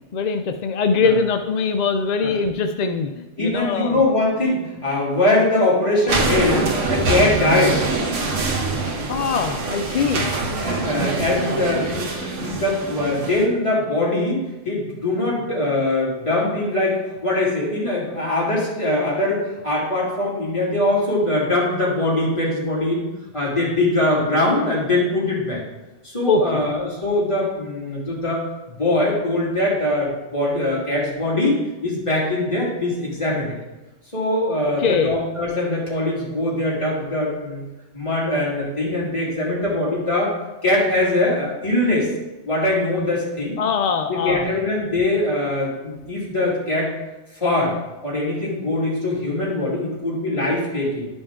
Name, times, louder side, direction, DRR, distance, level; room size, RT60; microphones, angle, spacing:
voice 1, 0.1-3.1 3.4-4.0 9.1-10.3 26.3-26.6 34.8-35.2 43.6-44.5, left 5 dB, 60° left, 6 dB, 0.4 m, -22 dB
voice 2, 3.4-7.8 10.6-23.0 23.3-25.6 26.0-28.4 28.8-33.5 34.1-37.6 37.9-40.3 40.6-42.1 42.5-43.6 44.1-46.9 47.4-47.8 48.0-51.1, left 2 dB, 25° left, -7 dB, 2.8 m, -22 dB
sound 1, 6.1-13.4, right 3 dB, 85° right, 1.4 m, -24 dB
11.0 x 5.2 x 3.7 m, 1.0 s
omnidirectional pair, 1.2 m